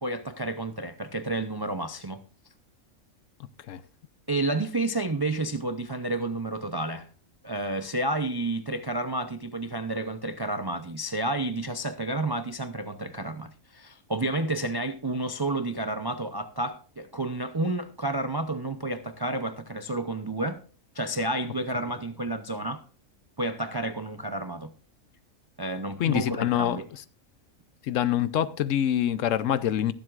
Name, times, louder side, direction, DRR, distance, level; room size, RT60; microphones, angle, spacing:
voice 1, 0.0-2.2 4.3-7.1 7.4-20.6 20.9-22.8 23.4-24.7 25.6-26.9, right 2 dB, 40° right, 0.3 m, -30 dB
voice 2, 26.0-27.0 27.8-29.9, left 11 dB, 70° left, 1.0 m, -25 dB
21.5 x 7.7 x 2.4 m
omnidirectional pair, 1.4 m